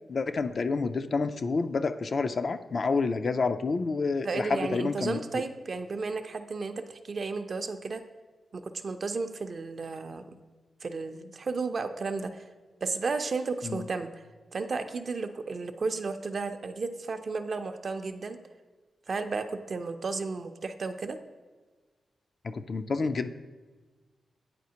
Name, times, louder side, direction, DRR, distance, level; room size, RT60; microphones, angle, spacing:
voice 1, 0.1-5.4 13.6-13.8 22.4-23.3, left 4 dB, 55° left, 9 dB, 0.3 m, -29 dB
voice 2, 4.2-8.0 8.5-10.4 10.8-12.4 12.8-14.2 14.5-18.4 19.1-21.2, right 4 dB, 55° right, 8 dB, 0.4 m, -33 dB
9.3 x 4.1 x 2.8 m, 1.3 s
cardioid pair, 70°, 0 cm